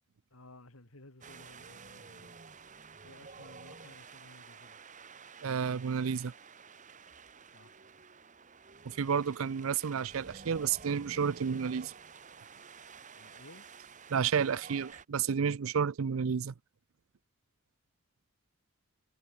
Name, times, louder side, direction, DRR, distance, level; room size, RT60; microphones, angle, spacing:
voice 1, 0.3-2.4 3.0-4.9 7.5-7.8 13.1-13.7, left 2 dB, 80° left, 3.2 m, -56 dB
Wind, 1.2-15.1, right 5 dB, 35° right, 1.7 m, -52 dB
voice 2, 5.4-6.3 8.9-11.9 14.1-16.5, right 6 dB, 75° right, 0.5 m, -31 dB
head